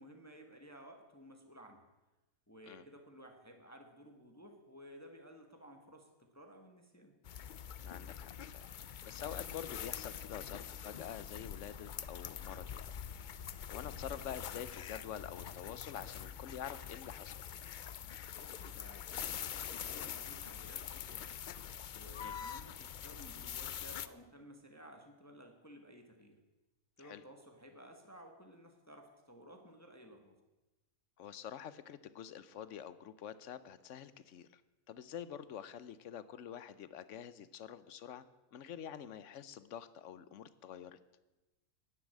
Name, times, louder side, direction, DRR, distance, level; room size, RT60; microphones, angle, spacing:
voice 1, 0.0-1.8 2.5-7.2 18.3-21.3 21.9-26.4 27.0-30.4, equal, 10° left, 4 dB, 1.3 m, -56 dB
sound 1, 7.2-24.1, left 9 dB, 85° left, 0.4 m, -45 dB
voice 2, 7.8-8.7 9.0-12.9 13.7-17.5 22.2-22.4 27.0-27.2 31.2-34.6 34.9-38.2 38.5-41.0, left 9 dB, 65° left, 15 dB, 1.0 m, -47 dB
10.5 x 9.6 x 8.4 m, 1.1 s
omnidirectional pair, 1.5 m